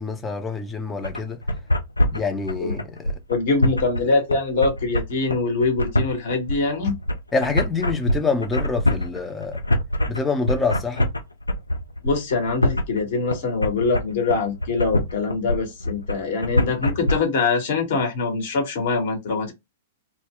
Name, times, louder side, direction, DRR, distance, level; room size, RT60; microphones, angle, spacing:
voice 1, 0.0-1.4 2.1-3.2 7.3-9.6 10.1-11.1, left 4 dB, 15° left, 0.5 m, -26 dB
sound 1, 1.0-17.1, left 1 dB, 85° left, 0.5 m, -24 dB
voice 2, 3.3-7.0 12.0-19.5, left 4 dB, 50° left, 1.0 m, -23 dB
2.1 x 2.1 x 3.5 m
figure-of-eight pair, 105°, 0 cm